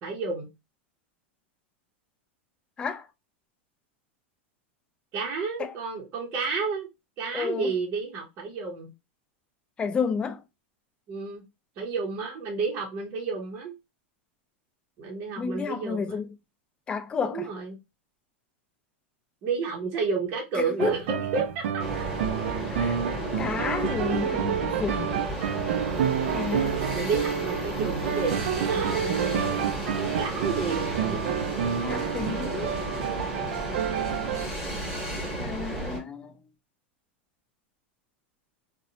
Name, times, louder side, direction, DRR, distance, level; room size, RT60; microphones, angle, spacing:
voice 1, 0.0-0.5 5.1-6.9 7.2-8.9 11.1-11.4 11.8-13.7 15.0-16.2 17.2-17.8 19.4-21.0 21.3-21.6 26.9-29.6 30.0-31.2, right 4 dB, 35° right, 0.7 m, -31 dB
voice 2, 7.3-7.7 9.8-10.4 15.4-16.3 16.9-17.5 20.6-20.9 22.7-23.0 23.4-25.2 26.3-26.8 31.8-32.8 35.3-36.3, left 5 dB, 15° left, 0.3 m, -31 dB
sound 1, 20.8-34.5, right 8 dB, 75° right, 0.3 m, -29 dB
sound 2, 21.8-36.0, right 1 dB, 5° right, 1.1 m, -33 dB
2.7 x 2.0 x 2.7 m
supercardioid pair, 155°, 7 cm